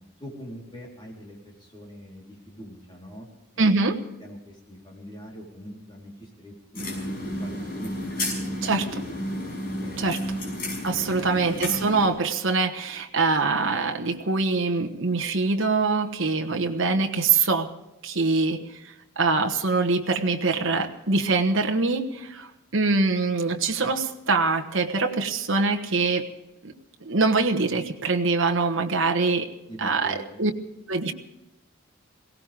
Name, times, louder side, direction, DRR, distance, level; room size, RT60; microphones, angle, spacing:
voice 1, 0.2-3.3 3.5-3.9 4.2-8.0 9.8-10.2 10.8-11.4 29.7-30.4, equal, 20° left, -2 dB, 3.9 m, -43 dB
voice 2, 3.6-4.0 8.6-9.1 10.0-10.4 10.8-17.7 18.0-26.3 26.6-26.7 27.0-29.5 29.8-30.5 30.9-31.1, right 3 dB, 60° right, 4 dB, 1.3 m, -24 dB
sound 1, 6.8-12.1, left 1 dB, 40° left, 5.9 m, -32 dB
22.0 x 17.5 x 3.6 m, 0.89 s
head